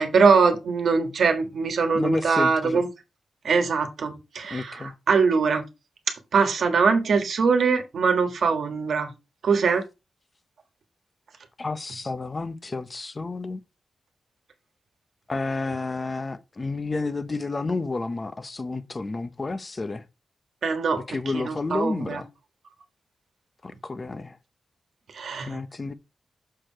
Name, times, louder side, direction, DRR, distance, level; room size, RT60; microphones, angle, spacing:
voice 1, 0.0-2.9 3.4-5.6 6.1-9.1 9.4-9.9 20.6-22.2 25.1-25.6, right 5 dB, 65° right, 1.4 m, -22 dB
voice 2, 1.9-2.8 4.5-4.9 11.6-13.6 15.3-20.0 21.1-22.3 23.6-24.4 25.5-25.9, left 3 dB, 25° left, 0.7 m, -30 dB
6.7 x 4.7 x 4.5 m
wide cardioid pair, 145°, 0 cm